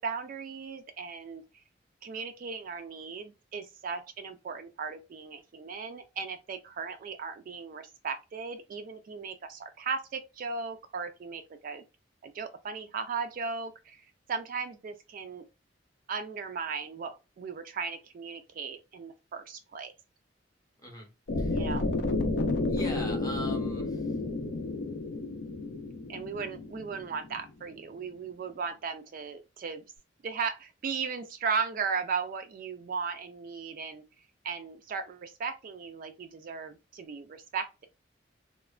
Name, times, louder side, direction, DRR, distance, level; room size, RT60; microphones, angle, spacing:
voice 1, 0.0-1.4 2.0-11.8 12.2-15.4 16.1-19.9 21.5-21.8 26.1-29.8 30.2-34.0 34.4-37.9, right 5 dB, 50° right, 0.3 m, -36 dB
sound 1, 21.3-27.4, left 2 dB, 65° left, 0.4 m, -31 dB
voice 2, 21.4-21.7 22.7-24.2, left 1 dB, 20° left, 0.7 m, -41 dB
3.1 x 2.1 x 2.3 m
head